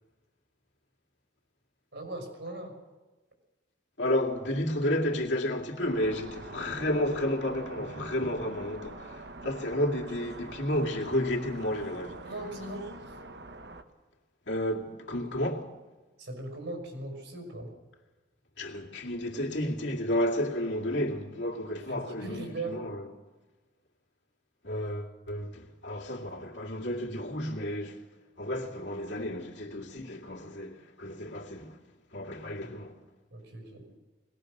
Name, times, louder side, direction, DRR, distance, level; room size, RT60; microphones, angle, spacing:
voice 1, 1.9-2.7 12.2-13.1 16.2-17.7 21.9-22.8 32.6-32.7 33.3-33.8, right 2 dB, 85° right, 5.9 m, -39 dB
voice 2, 4.0-9.1 9.4-12.2 14.5-15.7 18.6-22.9 24.6-28.0 28.4-31.8 32.1-33.0, left 1 dB, 80° left, 2.5 m, -31 dB
sound 1, 5.8-13.8, right 2 dB, 65° right, 1.2 m, -45 dB
21.0 x 19.0 x 6.6 m
head